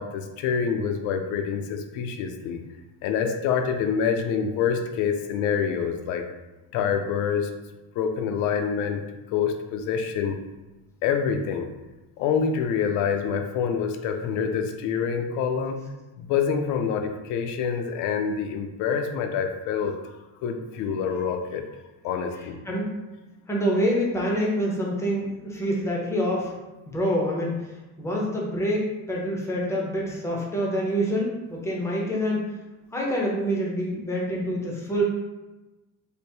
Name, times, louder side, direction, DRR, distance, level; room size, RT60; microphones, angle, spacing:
voice 1, 0.0-2.6 3.0-6.3 6.7-7.5 8.0-10.4 11.0-11.7 12.2-15.8 16.2-21.7 22.0-22.6, left 6 dB, 55° left, 6 dB, 0.5 m, -26 dB
voice 2, 23.5-26.5 26.9-27.5 28.0-32.5 32.9-35.0, equal, 10° left, -3 dB, 0.6 m, -26 dB
3.4 x 2.0 x 4.3 m, 1.1 s
cardioid pair, 155°, 37 cm